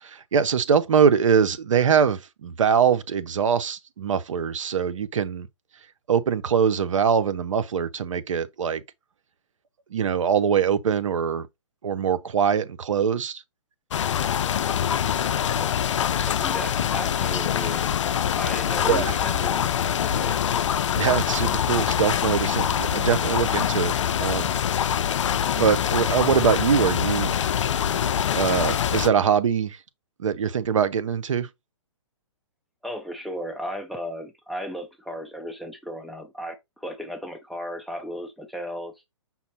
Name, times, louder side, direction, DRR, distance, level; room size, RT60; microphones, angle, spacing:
voice 1, 0.0-5.5 6.1-8.8 9.9-11.5 11.8-13.4 18.9-19.1 21.0-23.9 24.2-24.5 25.6-27.3 28.3-29.8 30.2-31.5, right 7 dB, 80° right, 0.6 m, -23 dB
sound 1, 13.9-29.1, left 9 dB, 70° left, 0.4 m, -24 dB
voice 2, 15.4-15.8 16.2-17.8 18.4-20.3 32.8-39.0, equal, ahead, 0.5 m, -35 dB
5.6 x 2.0 x 4.1 m
hypercardioid pair, 140°, 16 cm